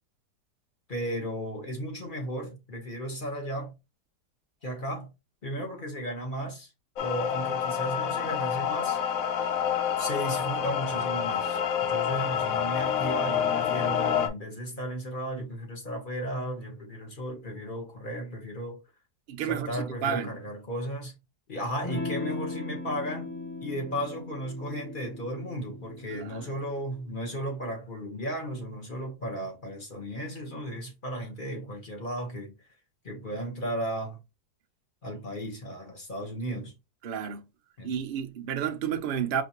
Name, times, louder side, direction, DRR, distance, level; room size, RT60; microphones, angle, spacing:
voice 1, 0.9-3.7 4.6-5.1 5.4-6.7 7.0-9.0 10.0-11.6 11.9-18.8 19.4-21.2 21.5-23.3 23.6-32.5 33.0-34.2 35.0-36.7 37.8-38.0, equal, 35° left, 1.2 m, -35 dB
sound 1, 7.0-14.3, left 8 dB, 65° left, 1.0 m, -28 dB
voice 2, 19.3-20.3 26.1-26.5 37.0-37.4 37.8-39.4, right 8 dB, 80° right, 0.4 m, -31 dB
Electric guitar / Strum, 21.8-26.9, left 3 dB, 10° left, 0.8 m, -38 dB
5.0 x 3.2 x 2.9 m
omnidirectional pair, 1.8 m